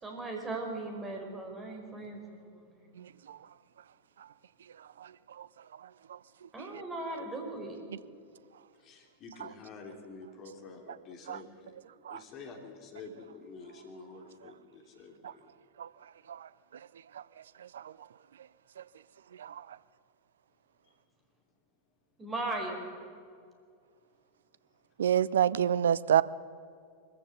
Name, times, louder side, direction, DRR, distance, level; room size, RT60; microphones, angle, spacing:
voice 1, 0.0-2.6 6.5-7.8 22.2-22.8, right 2 dB, 15° right, 2 dB, 4.7 m, -38 dB
voice 2, 8.8-11.7 12.1-15.4, left 4 dB, 35° left, 3 dB, 3.1 m, -48 dB
voice 3, 25.0-26.2, right 9 dB, 65° right, 19 dB, 0.5 m, -25 dB
22.5 x 14.5 x 8.2 m, 2.3 s
figure-of-eight pair, 90°, 0 cm